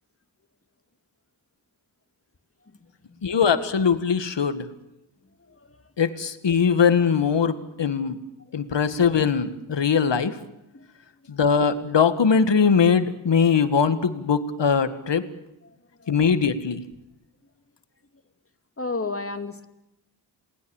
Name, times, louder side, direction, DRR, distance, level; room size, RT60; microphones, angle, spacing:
voice 1, 3.2-4.7 6.0-8.2 8.5-10.4 11.3-15.2 16.1-16.8, left 6 dB, 65° left, 11 dB, 1.9 m, -21 dB
voice 2, 5.5-5.8 10.7-10.9 16.0-16.1 18.8-19.6, left 3 dB, 30° left, 8 dB, 2.5 m, -33 dB
28.0 x 20.0 x 7.3 m, 0.89 s
cardioid pair, 55°, 46 cm